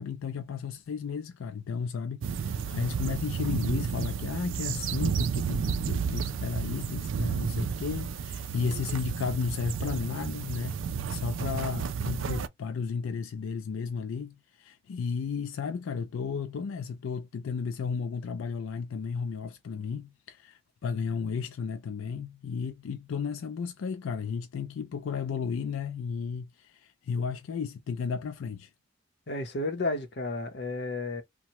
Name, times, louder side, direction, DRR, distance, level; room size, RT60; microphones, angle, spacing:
voice 1, 0.0-28.7, left 6 dB, 90° left, 0.4 m, -34 dB
sound 1, 2.2-12.5, right 6 dB, 75° right, 0.4 m, -32 dB
voice 2, 29.3-31.2, left 2 dB, 55° left, 0.7 m, -32 dB
2.8 x 2.1 x 2.9 m
head